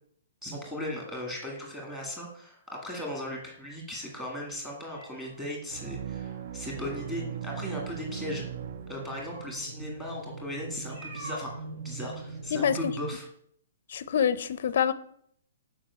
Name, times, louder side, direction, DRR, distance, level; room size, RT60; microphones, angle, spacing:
voice 1, 0.4-8.4 8.9-13.3, left 1 dB, 5° right, 1.8 m, -37 dB
sound 1, 2.8-12.3, right 1 dB, 85° right, 2.5 m, -50 dB
sound 2, 5.7-9.6, right 10 dB, 35° right, 0.4 m, -39 dB
sound 3, 6.6-13.2, right 3 dB, 65° right, 1.4 m, -43 dB
voice 2, 13.9-14.9, left 8 dB, 45° left, 0.5 m, -26 dB
7.3 x 5.0 x 6.8 m
hypercardioid pair, 180°, 0 cm